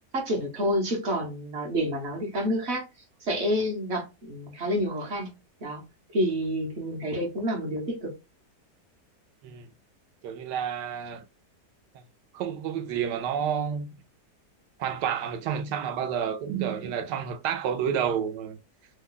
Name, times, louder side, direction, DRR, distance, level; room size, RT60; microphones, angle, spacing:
voice 1, 0.1-2.9 3.2-5.3 5.6-5.8 6.1-8.1, equal, 45° right, 1.0 m, -28 dB
voice 2, 10.2-11.2 12.3-13.9 14.8-18.6, right 8 dB, 80° right, 1.2 m, -30 dB
3.1 x 2.2 x 3.7 m
omnidirectional pair, 1.8 m